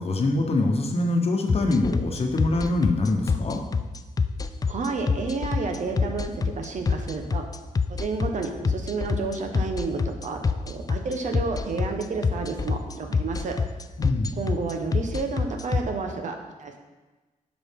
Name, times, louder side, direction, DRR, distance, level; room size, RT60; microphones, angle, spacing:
voice 1, 0.0-3.6 14.0-14.4, left 2 dB, 45° left, 2 dB, 1.1 m, -24 dB
sound 1, 1.5-15.8, left 5 dB, 25° left, 0.4 m, -25 dB
voice 2, 4.7-7.4 7.9-13.6 14.4-16.8, right 4 dB, 60° right, 4 dB, 1.0 m, -30 dB
9.8 x 6.1 x 3.7 m, 1.2 s
wide cardioid pair, 130°, 14 cm